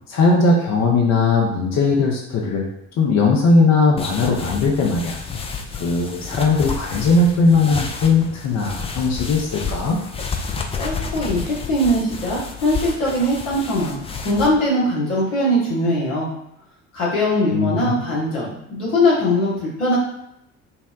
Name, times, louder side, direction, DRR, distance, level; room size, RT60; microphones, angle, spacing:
voice 1, 0.1-2.7 3.0-5.1 5.8-10.0 17.5-18.1, left 3 dB, 40° left, -1 dB, 0.8 m, -18 dB
sound 1, 4.0-14.5, left 5 dB, 15° left, 0.4 m, -30 dB
voice 2, 10.8-14.0 14.2-16.3 16.9-20.0, left 1 dB, 75° left, -6 dB, 1.3 m, -21 dB
5.4 x 2.2 x 2.3 m, 0.79 s
figure-of-eight pair, 50°, 40 cm